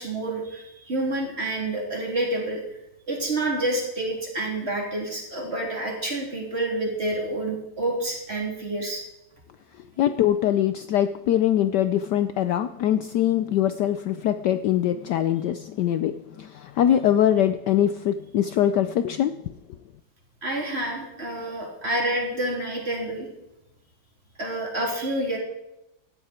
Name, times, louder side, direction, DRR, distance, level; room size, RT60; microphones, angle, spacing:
voice 1, 0.0-2.6 3.1-9.0 20.4-23.3 24.4-25.4, right 1 dB, 30° right, -1 dB, 3.6 m, -28 dB
voice 2, 10.0-19.4, left 11 dB, 70° left, 10 dB, 1.1 m, -23 dB
16.5 x 12.5 x 4.4 m, 0.88 s
omnidirectional pair, 2.2 m